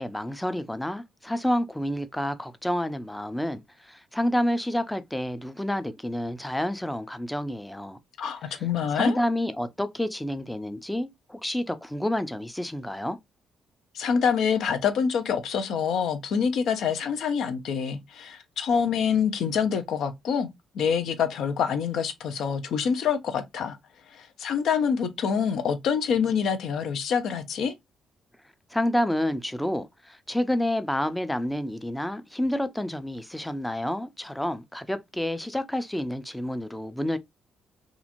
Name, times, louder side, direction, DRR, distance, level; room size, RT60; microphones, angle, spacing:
voice 1, 0.0-8.0 8.9-13.2 28.7-37.2, left 1 dB, 5° left, 0.4 m, -29 dB
voice 2, 8.2-9.2 13.9-20.5 20.7-23.8 24.1-27.7, left 7 dB, 75° left, 0.6 m, -26 dB
2.9 x 2.4 x 2.5 m
cardioid pair, 90°, 0 cm